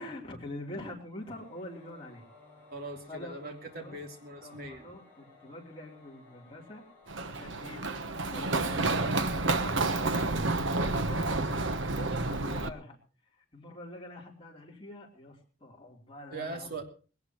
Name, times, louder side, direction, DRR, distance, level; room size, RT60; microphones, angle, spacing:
voice 1, 0.0-2.3 3.1-4.0 4.4-6.8 7.2-9.6 10.0-13.0 13.5-16.8, left 1 dB, 25° left, -2 dB, 3.5 m, -45 dB
Singing / Musical instrument, 1.1-11.1, left 3 dB, 10° left, 7.8 m, -59 dB
voice 2, 2.7-4.9 10.5-10.7 16.3-16.8, right 2 dB, 50° right, 2 dB, 3.0 m, -41 dB
Run, 7.1-12.7, right 2 dB, 70° right, 1.1 m, -30 dB
20.5 x 18.0 x 3.1 m, 0.37 s
head